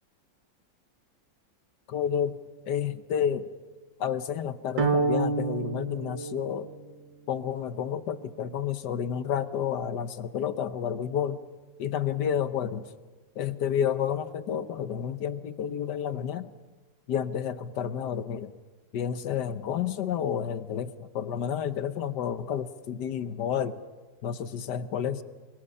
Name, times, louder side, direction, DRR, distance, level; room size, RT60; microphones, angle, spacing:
voice 1, 1.9-2.4 2.7-3.4 4.0-6.7 7.3-11.4 11.8-12.9 13.3-16.5 17.1-18.5 18.9-23.8 24.2-25.2, left 8 dB, 65° left, 12 dB, 1.4 m, -30 dB
sound 1, 4.8-7.1, right 4 dB, 70° right, 2.3 m, -28 dB
28.0 x 24.0 x 5.5 m, 1.3 s
omnidirectional pair, 2.1 m